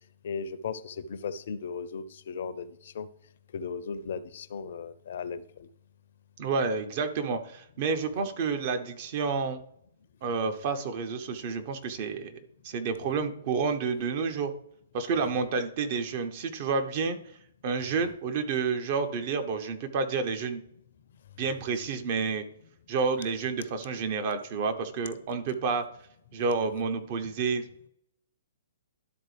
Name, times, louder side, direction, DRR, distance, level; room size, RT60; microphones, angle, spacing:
voice 1, 0.2-3.1 3.5-5.7, left 5 dB, 60° left, 13 dB, 0.6 m, -36 dB
voice 2, 6.4-9.6 10.2-12.4 12.6-14.5 14.9-17.2 17.6-20.6 21.4-22.4 22.9-25.8 26.3-27.6, right 5 dB, 45° right, 6 dB, 1.1 m, -29 dB
12.0 x 4.1 x 3.4 m, 0.71 s
figure-of-eight pair, 120°, 0 cm